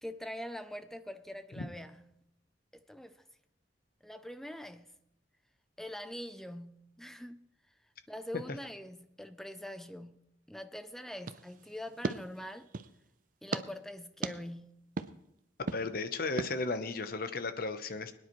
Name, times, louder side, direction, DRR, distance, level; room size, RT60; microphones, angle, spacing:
voice 1, 0.0-2.2 2.7-3.2 4.0-5.0 5.8-7.5 8.1-12.7 13.4-14.9, equal, ahead, 0.4 m, -44 dB
sound 1, 11.2-13.0 13.5-13.6 14.2-14.3 15.0-15.1 15.7-15.8 16.4-16.5, right 3 dB, 45° right, 0.5 m, -37 dB
voice 2, 15.7-18.1, left 3 dB, 50° left, 0.8 m, -35 dB
22.0 x 9.9 x 3.1 m
head